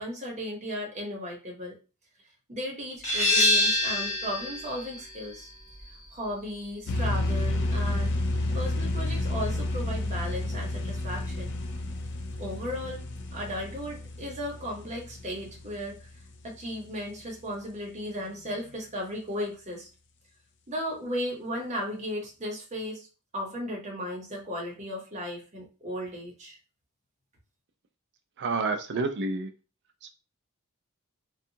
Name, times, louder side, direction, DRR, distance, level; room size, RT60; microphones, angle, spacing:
voice 1, 0.0-1.8 2.5-5.5 6.1-8.1 8.5-11.5 12.4-13.0 13.3-16.0 16.4-19.9 20.7-23.1 23.3-26.6, equal, 30° right, -1 dB, 0.8 m, -35 dB
sound 1, 3.0-8.4, left 1 dB, 35° left, 1.2 m, -28 dB
sound 2, 6.9-16.4, left 2 dB, 55° left, 0.4 m, -31 dB
voice 2, 28.4-29.5 30.0-30.1, right 3 dB, 55° right, 7 dB, 0.4 m, -29 dB
2.7 x 2.3 x 2.7 m, 0.33 s
head